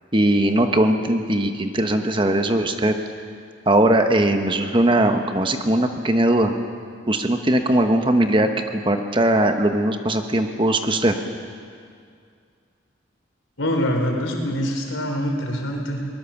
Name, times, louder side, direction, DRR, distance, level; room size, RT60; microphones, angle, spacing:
voice 1, 0.1-2.9 3.7-6.5 7.1-11.1, right 1 dB, 25° right, 6 dB, 1.1 m, -19 dB
voice 2, 13.6-16.1, equal, 85° left, 2 dB, 4.1 m, -24 dB
22.0 x 20.0 x 7.2 m, 2.2 s
head